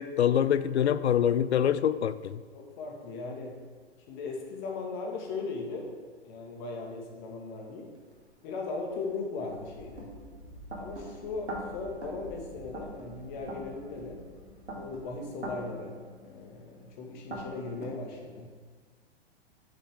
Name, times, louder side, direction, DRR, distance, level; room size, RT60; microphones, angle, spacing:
voice 1, 0.0-2.4, left 9 dB, 80° left, 15 dB, 0.5 m, -25 dB
voice 2, 2.5-3.6 4.1-5.9 6.2-7.9 8.4-10.1 10.8-14.2 14.7-18.5, left 3 dB, 45° left, 1 dB, 1.8 m, -38 dB
sound 1, 8.1-8.2 8.9-17.9, right 1 dB, 85° right, 1.9 m, -43 dB
10.0 x 6.0 x 3.5 m, 1.5 s
figure-of-eight pair, 110°, 33 cm